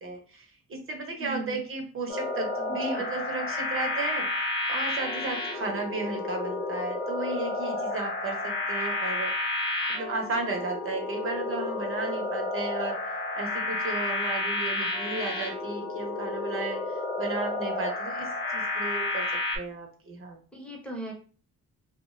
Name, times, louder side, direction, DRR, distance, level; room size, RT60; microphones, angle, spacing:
voice 1, 0.0-4.3 4.7-9.3 9.9-13.0 13.3-20.4, right 3 dB, 45° right, 2 dB, 0.8 m, -34 dB
voice 2, 1.2-1.6 2.7-3.0 20.5-21.1, right 1 dB, 5° left, -2 dB, 0.8 m, -37 dB
sound 1, 2.1-19.6, left 2 dB, 40° left, 0.7 m, -31 dB
2.4 x 2.1 x 2.4 m, 0.39 s
cardioid pair, 90°, 30 cm